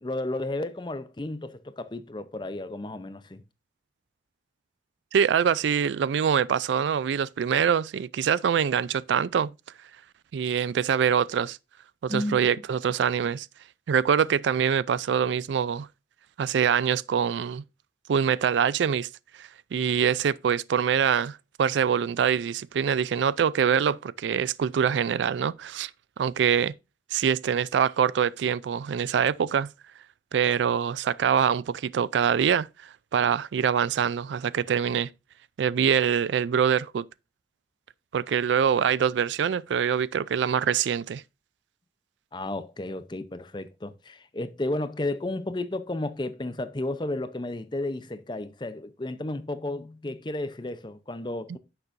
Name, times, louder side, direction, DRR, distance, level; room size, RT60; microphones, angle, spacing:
voice 1, 0.0-3.4 12.1-12.4 42.3-51.6, left 2 dB, 25° left, 0.6 m, -33 dB
voice 2, 5.1-9.5 10.3-11.6 12.0-13.5 13.9-15.9 16.4-17.6 18.1-19.1 19.4-25.9 26.2-26.7 27.1-29.7 30.3-35.1 35.6-37.0 38.1-41.2, right 7 dB, 85° right, 0.3 m, -24 dB
10.0 x 6.7 x 2.5 m
head